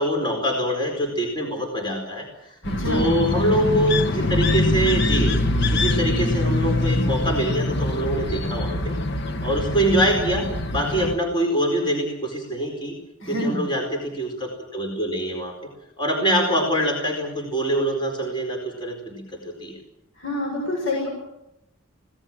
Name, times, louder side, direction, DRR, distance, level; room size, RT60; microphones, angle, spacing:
voice 1, 0.0-2.3 2.9-5.3 5.7-9.0 9.4-12.9 13.4-15.5 16.0-19.8, right 1 dB, 25° left, 2 dB, 4.7 m, -24 dB
voice 2, 2.6-3.2 13.2-13.6 20.2-21.1, left 1 dB, 70° left, -1 dB, 6.8 m, -26 dB
sound 1, 2.6-11.2, left 2 dB, 55° left, 1.4 m, -24 dB
25.5 x 18.5 x 7.5 m, 0.85 s
head